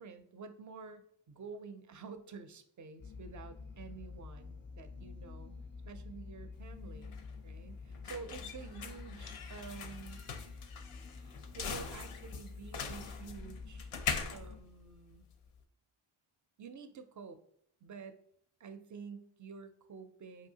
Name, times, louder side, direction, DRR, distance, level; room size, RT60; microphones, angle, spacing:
voice 1, 0.0-5.5 5.9-7.2 7.4-10.2 11.2-13.9 14.3-15.3 16.6-17.4 17.8-18.2 18.6-20.5, right 5 dB, 40° right, 9 dB, 0.4 m, -49 dB
sound 1, 3.0-14.6, left 4 dB, 25° left, 0.3 m, -48 dB
sound 2, 6.5-15.6, left 6 dB, 90° left, 0.6 m, -42 dB
5.0 x 2.7 x 2.7 m, 0.66 s
wide cardioid pair, 100°, 50 cm